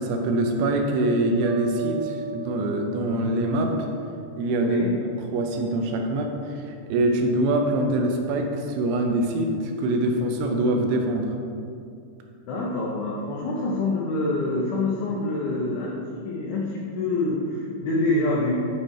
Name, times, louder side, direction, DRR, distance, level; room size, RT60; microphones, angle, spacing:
voice 1, 0.0-3.7 4.4-4.8 5.3-11.3, right 1 dB, 80° right, 2 dB, 3.0 m, -24 dB
sound 1, 1.4-4.5, right 4 dB, 60° right, 1.8 m, -37 dB
voice 2, 4.6-5.0 12.4-18.7, left 2 dB, 90° left, -4 dB, 2.1 m, -26 dB
9.1 x 4.4 x 4.7 m, 2.4 s
omnidirectional pair, 5.5 m